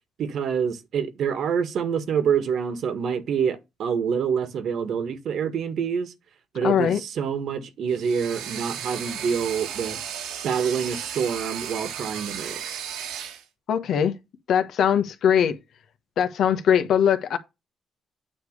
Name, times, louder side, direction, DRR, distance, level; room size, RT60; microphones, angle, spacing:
voice 1, 0.2-6.1 6.5-10.0 10.4-12.6, right 7 dB, 65° right, 1.6 m, -26 dB
voice 2, 6.6-7.0 13.7-14.1 14.5-15.6 16.2-17.4, left 8 dB, 70° left, 1.2 m, -21 dB
sound 1, 7.9-13.4, right 9 dB, 90° right, 1.9 m, -35 dB
9.2 x 3.3 x 6.5 m
cardioid pair, 90°, 0 cm